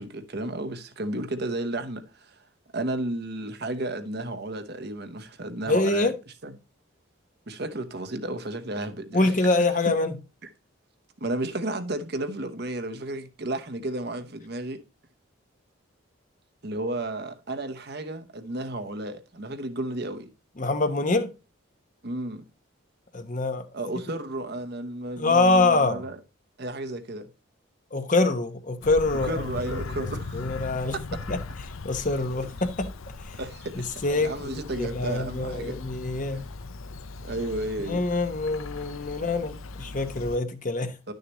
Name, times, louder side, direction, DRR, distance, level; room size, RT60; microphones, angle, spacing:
voice 1, 0.0-2.4 2.7-6.1 6.4-6.5 7.5-9.3 11.2-14.8 16.6-20.3 22.0-22.4 23.7-26.2 26.6-27.3 29.2-30.4 30.9-31.0 33.3-33.7 34.1-35.8 36.3-36.4 37.2-38.0 41.1-41.2, right 1 dB, 50° right, 1.0 m, -33 dB
voice 2, 5.7-6.1 9.1-10.1 20.6-21.3 23.1-23.6 25.2-26.0 27.9-30.1 30.3-31.0 31.3-31.4 31.8-32.9 33.3-33.4 33.7-36.4 37.8-40.9, left 3 dB, 40° left, 1.0 m, -25 dB
Bird vocalization bird call bird song, 28.8-40.4, left 3 dB, 80° left, 0.7 m, -38 dB
11.0 x 6.6 x 3.0 m
head